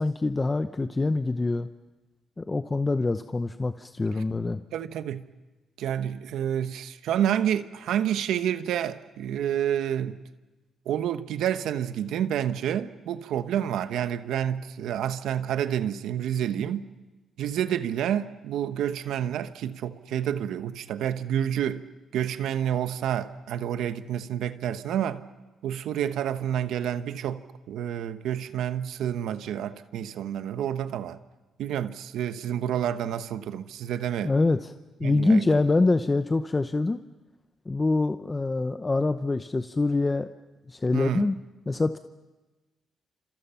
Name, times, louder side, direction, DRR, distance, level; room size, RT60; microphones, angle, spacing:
voice 1, 0.0-1.7 2.4-4.6 34.2-34.7 35.0-37.0 37.7-40.3 40.7-41.4 41.7-42.0, left 3 dB, 20° left, 0.7 m, -25 dB
voice 2, 4.7-5.2 5.8-10.2 10.9-16.9 17.4-21.8 22.1-25.2 25.6-31.2 31.6-34.3 35.0-35.6 40.9-41.3, right 10 dB, 80° right, 1.1 m, -29 dB
29.5 x 27.0 x 5.8 m
cardioid pair, 110°, 0 cm